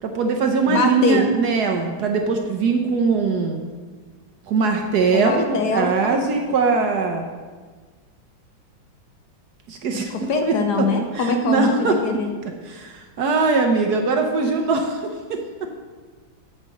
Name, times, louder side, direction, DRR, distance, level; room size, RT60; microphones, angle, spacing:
voice 1, 0.0-3.6 4.5-7.2 9.7-10.9 11.1-12.0 12.6-15.7, right 4 dB, 65° right, 3 dB, 1.1 m, -21 dB
voice 2, 0.7-1.2 5.1-6.2 9.9-12.3, left 3 dB, 65° left, 4 dB, 1.1 m, -23 dB
8.0 x 4.3 x 7.1 m, 1.4 s
omnidirectional pair, 2.1 m